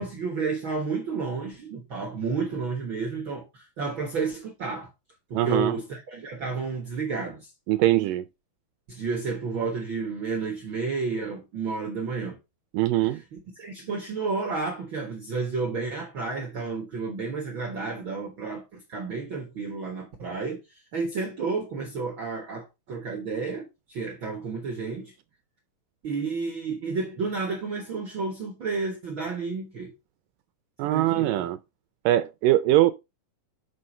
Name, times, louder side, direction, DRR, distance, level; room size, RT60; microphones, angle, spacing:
voice 1, 0.0-4.9 5.3-7.5 8.9-12.4 13.0-20.6 20.9-25.1 26.0-29.9 30.8-31.5, right 4 dB, 60° right, 1.3 m, -31 dB
voice 2, 5.3-5.8 7.7-8.3 12.7-13.2 30.8-31.6 32.1-32.9, right 15 dB, 80° right, 2.0 m, -22 dB
6.6 x 6.1 x 4.3 m
omnidirectional pair, 4.3 m